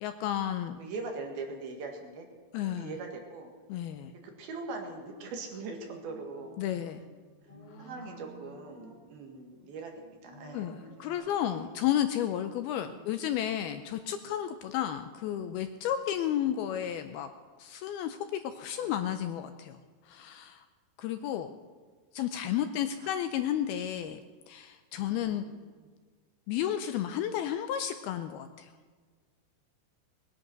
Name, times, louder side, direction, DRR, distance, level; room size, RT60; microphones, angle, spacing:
voice 1, 0.0-0.8 2.5-2.9 3.7-4.1 6.6-7.0 7.8-7.9 10.5-17.3 17.6-19.8 20.1-20.7 21.0-21.5 22.1-24.2 24.5-25.4 26.5-28.7, left 10 dB, 80° left, 9 dB, 2.3 m, -32 dB
voice 2, 0.7-2.3 2.6-3.5 4.1-6.6 7.8-10.7 11.1-11.7 12.8-13.1 18.8-19.0 23.0-23.1 25.2-25.4 25.8-25.9, right 3 dB, 65° right, 2 dB, 3.5 m, -42 dB
sound 1, 4.7-5.2 5.9-7.2 7.5-9.0 10.2-11.1, equal, 35° left, 3.5 m, -51 dB
20.0 x 11.0 x 6.0 m, 1.5 s
omnidirectional pair, 4.9 m